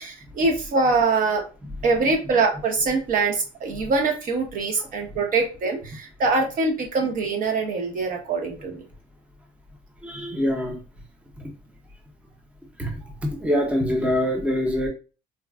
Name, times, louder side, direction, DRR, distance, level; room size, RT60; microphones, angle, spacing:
voice 1, 0.0-1.4 1.8-8.8, right 3 dB, 55° right, 2 dB, 1.0 m, -23 dB
voice 2, 10.0-10.8 11.4-11.5 12.8-12.9 13.2-14.9, equal, 5° right, 3 dB, 0.6 m, -24 dB
4.0 x 2.2 x 2.3 m, 0.33 s
cardioid pair, 110°, 17 cm